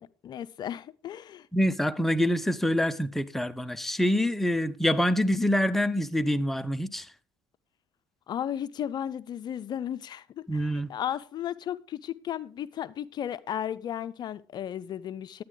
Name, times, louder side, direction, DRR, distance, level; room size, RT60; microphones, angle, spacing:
voice 1, 0.0-1.5 8.3-15.4, left 10 dB, 50° left, 0.5 m, -35 dB
voice 2, 1.5-7.1 10.5-10.9, equal, 5° left, 0.7 m, -26 dB
11.0 x 9.0 x 3.8 m
supercardioid pair, 80°, 9 cm